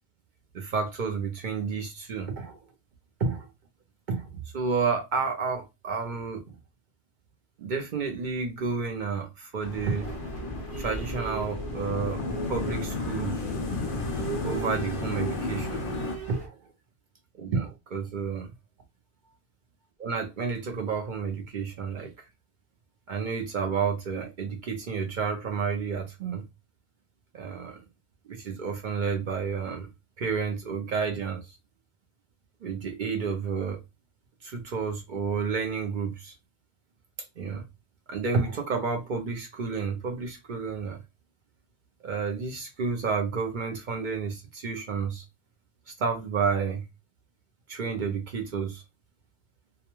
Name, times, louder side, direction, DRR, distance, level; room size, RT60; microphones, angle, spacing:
voice 1, 0.5-2.6 3.2-3.5 4.1-6.6 7.6-10.2 10.8-13.4 14.4-15.8 16.3-16.7 17.4-18.5 20.0-22.1 23.1-26.4 27.3-27.8 28.3-29.9 30.2-31.6 32.6-33.8 34.4-36.3 37.2-37.6 38.1-41.0 42.0-45.2 45.9-46.8 47.7-48.8, right 5 dB, 55° right, 0.6 m, -30 dB
sound 1, 9.6-16.2, left 3 dB, 60° left, 0.7 m, -33 dB
sound 2, 9.7-16.5, right 4 dB, 40° right, 0.9 m, -38 dB
2.3 x 2.2 x 2.9 m
omnidirectional pair, 1.1 m